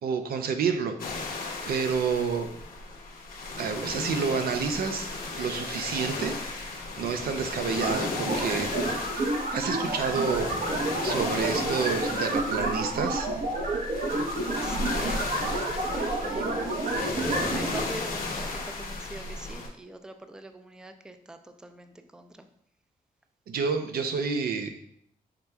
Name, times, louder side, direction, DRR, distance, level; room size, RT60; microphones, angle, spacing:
voice 1, 0.0-1.3 1.7-2.5 3.6-5.1 5.4-9.0 9.5-10.5 11.0-13.3 23.5-24.7, right 5 dB, 85° right, 7 dB, 0.5 m, -29 dB
sound 1, 1.0-19.7, left 3 dB, 70° left, 0.8 m, -35 dB
sound 2, 7.8-17.8, right 2 dB, 55° right, 0.8 m, -30 dB
voice 2, 14.6-22.5, right 1 dB, 5° right, 8 dB, 0.3 m, -44 dB
5.7 x 3.4 x 2.2 m, 0.68 s
cardioid pair, 85°, 15 cm